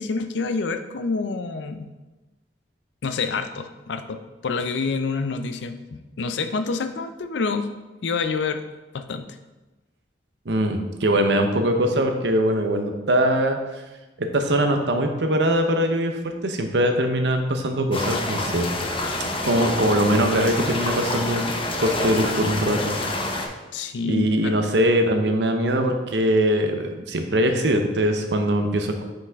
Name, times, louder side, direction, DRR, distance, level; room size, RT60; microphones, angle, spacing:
voice 1, 0.0-1.9 3.0-7.7 8.0-8.6 8.9-9.3 23.7-24.6, left 4 dB, 90° left, 9 dB, 0.5 m, -27 dB
voice 2, 10.5-13.6 14.2-18.7 19.4-21.5 21.8-23.0 24.0-29.0, right 1 dB, 75° right, 5 dB, 0.7 m, -22 dB
sound 1, 17.9-23.5, left 2 dB, 30° left, 0.7 m, -27 dB
5.8 x 5.2 x 3.5 m, 1.1 s
head